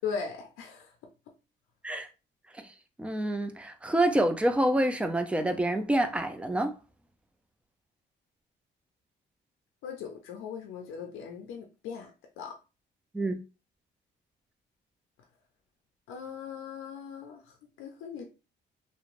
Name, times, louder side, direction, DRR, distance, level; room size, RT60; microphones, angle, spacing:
voice 1, 0.0-0.9 9.8-12.6 16.1-18.2, left 6 dB, 90° left, 0.5 m, -39 dB
voice 2, 3.0-6.7 13.1-13.4, right 1 dB, 5° right, 0.4 m, -27 dB
2.9 x 2.0 x 2.5 m
cardioid pair, 90°, 20 cm